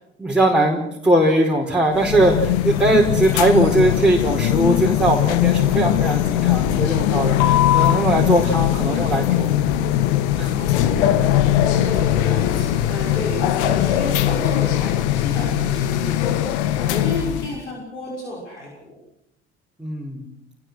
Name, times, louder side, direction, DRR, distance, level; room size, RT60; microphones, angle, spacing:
voice 1, 0.2-9.6 10.4-10.5 19.8-20.2, right 1 dB, 5° right, -2 dB, 5.0 m, -20 dB
sound 1, 1.9-17.5, left 12 dB, 70° left, 1.8 m, -20 dB
voice 2, 10.5-18.9, left 2 dB, 85° left, -3 dB, 6.3 m, -32 dB
29.0 x 20.5 x 6.4 m, 0.82 s
figure-of-eight pair, 55°, 34 cm